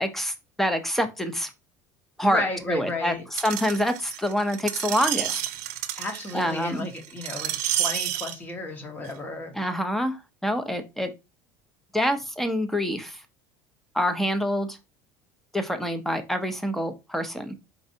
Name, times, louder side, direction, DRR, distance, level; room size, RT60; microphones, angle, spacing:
voice 1, 0.0-1.5 2.2-2.4 2.7-5.4 6.3-6.9 9.6-11.1 11.9-13.2 13.9-14.8 15.5-17.6, equal, 5° left, 0.5 m, -26 dB
voice 2, 2.2-3.2 6.0-9.6, left 2 dB, 20° left, 0.9 m, -33 dB
Screech, 3.4-8.3 9.0-9.1, right 12 dB, 90° right, 0.4 m, -30 dB
4.2 x 2.5 x 2.6 m
cardioid pair, 135°, 9 cm